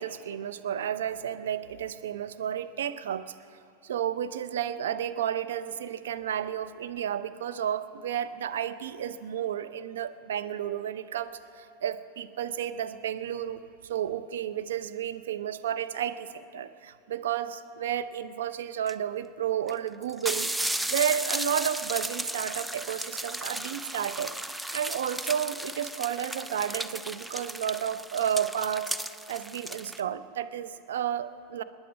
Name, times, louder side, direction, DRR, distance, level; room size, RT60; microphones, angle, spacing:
voice 1, 0.0-3.3 3.8-20.5 20.9-24.3 24.7-28.9 29.3-31.6, right 9 dB, 75° right, 11 dB, 0.7 m, -32 dB
sound 1, 18.9-19.0 19.7-19.8 20.0-30.0, right 1 dB, 5° right, 0.6 m, -35 dB
27.5 x 10.0 x 5.3 m, 2.4 s
hypercardioid pair, 85°, 0 cm